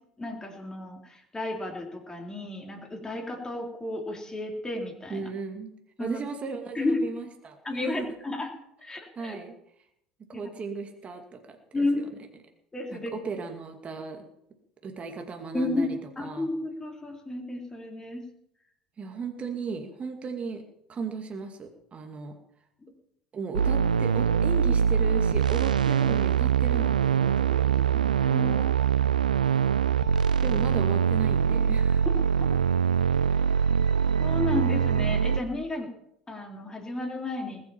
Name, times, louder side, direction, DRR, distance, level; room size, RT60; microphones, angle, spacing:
voice 1, 0.2-5.3 6.0-6.2 6.7-7.0 7.6-8.5 8.8-9.4 11.7-12.0 12.7-13.2 15.5-18.2 22.8-22.9 28.2-28.7 34.2-35.9 36.3-37.6, left 2 dB, 15° left, 1 dB, 3.9 m, -32 dB
voice 2, 5.1-5.7 6.0-8.1 9.2-9.6 10.3-12.1 12.9-14.3 14.8-16.5 19.0-20.6 20.9-22.4 23.3-28.4 30.4-32.1 33.5-33.7, right 5 dB, 30° right, 4 dB, 2.3 m, -36 dB
sound 1, 23.5-35.4, right 7 dB, 85° right, 0.6 m, -23 dB
20.0 x 8.8 x 7.4 m, 0.76 s
figure-of-eight pair, 70°, 4 cm